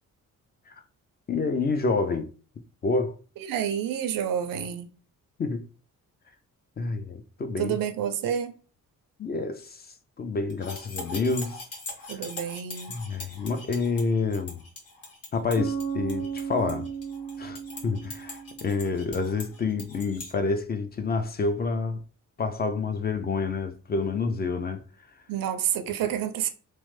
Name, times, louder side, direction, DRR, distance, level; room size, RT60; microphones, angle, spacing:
voice 1, 1.3-2.3 2.8-3.2 5.4-5.6 6.8-7.8 9.2-11.7 12.1-12.3 12.9-14.6 15.3-16.9 17.4-22.0 22.4-24.8, left 4 dB, 30° left, 0.4 m, -28 dB
voice 2, 3.5-4.9 7.6-8.5 12.1-12.9 25.3-26.5, right 9 dB, 80° right, 0.5 m, -29 dB
sound 1, 10.5-20.3, left 3 dB, 45° left, 1.1 m, -41 dB
Bass guitar, 15.6-19.2, right 6 dB, 80° left, 1.4 m, -35 dB
3.1 x 2.1 x 3.1 m
cardioid pair, 100°, 33 cm